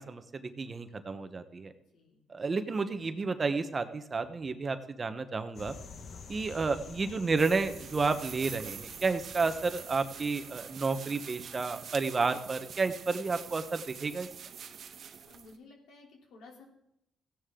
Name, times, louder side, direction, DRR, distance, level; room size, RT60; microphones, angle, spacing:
voice 1, 0.0-1.7 2.3-5.7 6.3-14.3, right 4 dB, 35° right, 10 dB, 1.1 m, -31 dB
voice 2, 1.9-2.3 15.2-16.6, left 3 dB, 80° left, 0 dB, 3.2 m, -54 dB
sound 1, 5.5-10.9, left 5 dB, 55° left, 1.6 m, -49 dB
sound 2, 7.4-15.6, right 7 dB, 60° right, 1.0 m, -45 dB
15.5 x 10.0 x 3.8 m, 0.79 s
cardioid pair, 90°, 0 cm